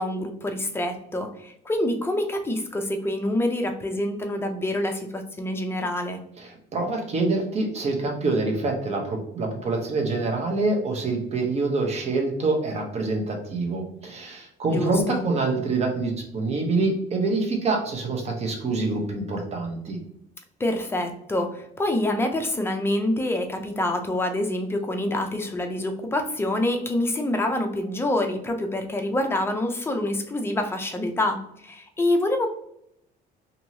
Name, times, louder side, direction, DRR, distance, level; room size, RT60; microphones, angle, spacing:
voice 1, 0.0-6.2 14.7-15.2 20.6-32.5, left 1 dB, 15° left, 5 dB, 0.5 m, -26 dB
voice 2, 6.4-20.0, right 3 dB, 40° right, 3 dB, 0.9 m, -26 dB
2.9 x 2.7 x 2.7 m, 0.73 s
cardioid pair, 110°, 17 cm